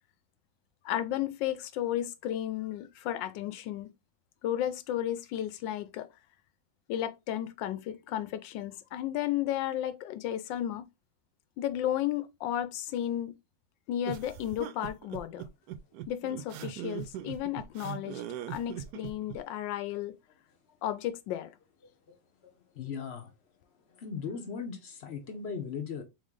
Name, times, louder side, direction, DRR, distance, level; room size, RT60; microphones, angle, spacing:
voice 1, 0.8-3.9 4.4-6.1 6.9-10.9 11.6-13.3 13.9-15.5 16.1-18.2 18.5-20.2 20.8-21.5, left 12 dB, 80° left, 1.3 m, -33 dB
sound 1, 14.0-19.4, right 11 dB, 70° right, 1.0 m, -40 dB
voice 2, 21.8-22.2 22.4-23.3 23.9-26.0, left 6 dB, 55° left, 0.8 m, -39 dB
3.9 x 3.1 x 3.6 m
omnidirectional pair, 2.0 m